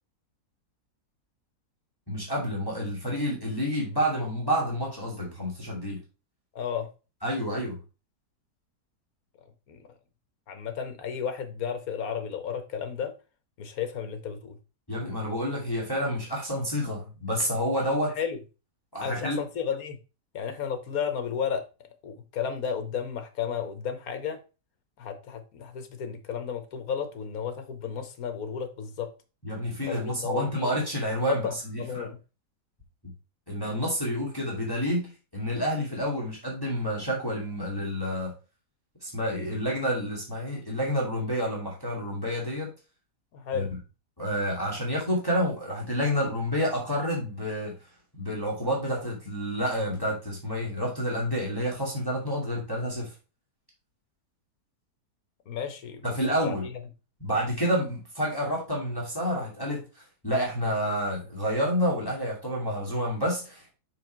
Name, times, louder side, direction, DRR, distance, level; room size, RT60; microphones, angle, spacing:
voice 1, 2.1-6.0 7.2-7.8 14.9-18.1 18.9-19.4 29.4-32.1 33.5-38.3 39.0-42.7 43.5-43.7 44.2-47.8 48.1-53.1 56.0-56.7 57.2-63.7, equal, 15° left, 2.2 m, -29 dB
voice 2, 6.5-6.9 9.7-9.9 10.5-13.1 13.6-14.6 18.2-18.4 19.0-20.0 20.3-21.6 22.0-24.4 25.0-29.1 29.8-30.7 31.3-32.2 43.3-43.7 55.5-56.0 56.4-56.8, left 7 dB, 65° left, 1.4 m, -33 dB
5.7 x 4.9 x 4.5 m
omnidirectional pair, 1.7 m